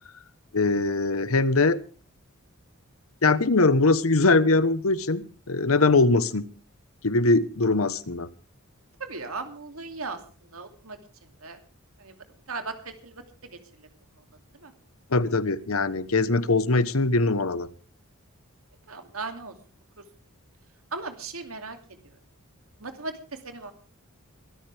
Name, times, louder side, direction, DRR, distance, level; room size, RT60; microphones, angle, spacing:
voice 1, 0.5-1.8 3.2-6.4 7.0-8.3 15.1-17.7, left 3 dB, 70° left, 15 dB, 1.1 m, -22 dB
voice 2, 9.0-11.0 11.4-11.6 12.0-12.1 12.5-13.9 14.1-14.2 14.6-14.7 18.9-19.5 20.0-20.1 20.9-22.2 22.8-23.7, right 3 dB, 70° right, 6 dB, 2.7 m, -38 dB
23.0 x 13.5 x 3.4 m, 0.38 s
head